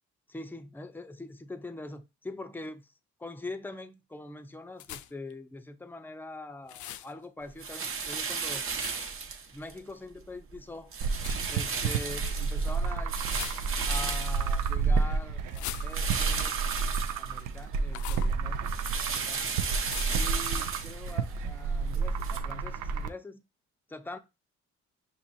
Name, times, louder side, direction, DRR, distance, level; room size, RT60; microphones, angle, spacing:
voice 1, 0.3-2.9 3.2-8.7 9.5-10.9 11.5-13.1 13.8-16.6 16.9-18.7 19.3-19.5 20.1-23.4 23.9-24.2, left 2 dB, 5° left, 0.5 m, -43 dB
sound 1, 4.8-5.3 6.7-7.1 8.8-9.2 11.2-11.4 13.2-14.0 15.5-16.3 17.9-18.4 19.9-20.3, left 12 dB, 70° left, 0.4 m, -41 dB
sound 2, 7.6-9.8 10.2-10.6 10.9-15.2 15.9-17.8 18.1-22.4, right 5 dB, 45° right, 0.9 m, -35 dB
sound 3, 11.0-23.1, right 4 dB, 85° right, 0.5 m, -30 dB
5.9 x 2.9 x 2.7 m
cardioid pair, 90°, 30 cm